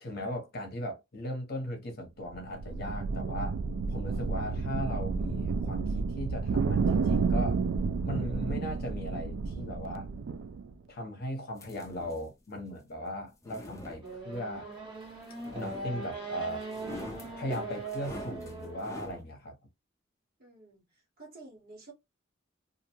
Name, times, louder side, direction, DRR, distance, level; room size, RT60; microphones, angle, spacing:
voice 1, 0.0-3.6 3.9-7.7 8.0-10.1 10.9-14.7 15.5-16.7 17.3-19.6, left 1 dB, 50° left, 0.9 m, -38 dB
sound 1, 2.3-10.7, right 4 dB, 70° right, 0.3 m, -31 dB
sound 2, 11.6-12.3 13.2-14.5 15.4-16.3 16.6-19.2, left 1 dB, 15° left, 0.5 m, -45 dB
Race car auto racing / Accelerating revving vroom, 14.0-19.2, right 3 dB, 25° right, 1.0 m, -40 dB
voice 2, 20.4-21.9, right 3 dB, 50° right, 1.3 m, -51 dB
2.5 x 2.2 x 2.9 m
head